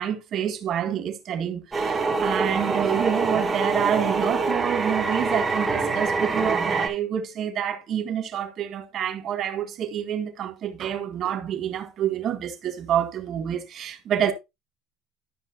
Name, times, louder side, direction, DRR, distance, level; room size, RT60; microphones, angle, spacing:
voice 1, 0.0-14.3, right 9 dB, 50° right, 1.6 m, -28 dB
sound 1, 1.7-6.9, right 4 dB, 20° right, 2.3 m, -25 dB
12.5 x 5.3 x 2.7 m
supercardioid pair, 95°, 0 cm